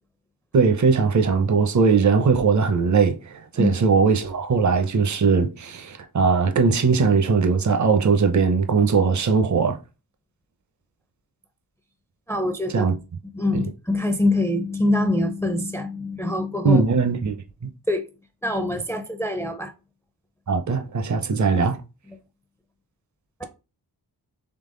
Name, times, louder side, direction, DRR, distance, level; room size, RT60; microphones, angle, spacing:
voice 1, 0.5-9.8 12.7-12.9 13.5-13.7 16.6-17.4 17.6-17.7 20.5-21.8, right 5 dB, 45° right, 0.7 m, -20 dB
voice 2, 12.3-12.9 13.3-16.8 17.9-18.1 18.4-19.7 23.4-23.5, left 2 dB, 5° left, 0.5 m, -24 dB
3.9 x 3.3 x 3.7 m
wide cardioid pair, 70°, 41 cm